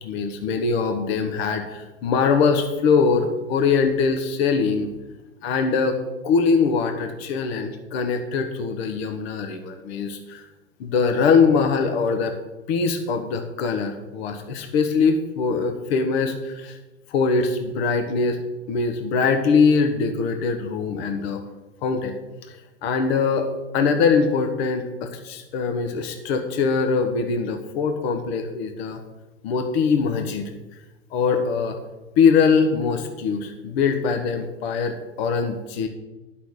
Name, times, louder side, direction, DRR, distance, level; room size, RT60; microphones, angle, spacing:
voice 1, 0.0-4.9 5.4-6.0 6.2-10.4 10.8-12.3 12.7-16.8 17.1-18.4 18.7-21.4 21.8-22.1 22.5-23.5 23.7-29.0 29.4-30.4 31.1-31.8 32.2-35.9, left 5 dB, 50° left, 6 dB, 1.4 m, -22 dB
11.5 x 5.8 x 6.6 m, 1.1 s
figure-of-eight pair, 100°, 39 cm